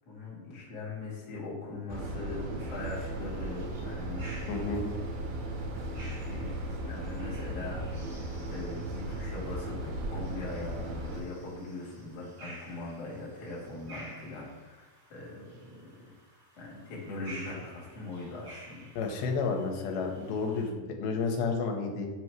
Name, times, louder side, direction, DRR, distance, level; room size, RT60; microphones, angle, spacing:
voice 1, 0.0-4.5 4.9-5.0 5.6-7.8 8.1-15.9 16.6-18.9, left 2 dB, 45° left, -5 dB, 1.4 m, -41 dB
sound 1, 1.9-11.2, right 1 dB, 75° right, 1.8 m, -36 dB
sound 2, 2.6-20.7, right 1 dB, 35° right, 1.6 m, -52 dB
voice 2, 4.5-4.9 19.0-22.1, left 4 dB, 90° left, 2 dB, 2.6 m, -31 dB
7.8 x 2.8 x 4.6 m, 1.2 s
omnidirectional pair, 4.3 m